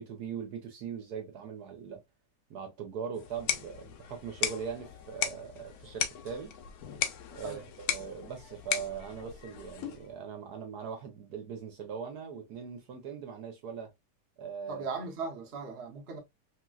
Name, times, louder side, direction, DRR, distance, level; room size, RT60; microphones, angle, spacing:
voice 1, 0.0-2.0 2.5-6.5 7.3-13.9 14.4-14.8 15.2-15.3, right 7 dB, 65° right, 1.3 m, -40 dB
sound 1, 3.2-10.1, left 8 dB, 65° left, 1.0 m, -36 dB
voice 2, 14.7-16.2, right 4 dB, 45° right, 1.0 m, -38 dB
3.2 x 2.9 x 2.3 m
omnidirectional pair, 1.9 m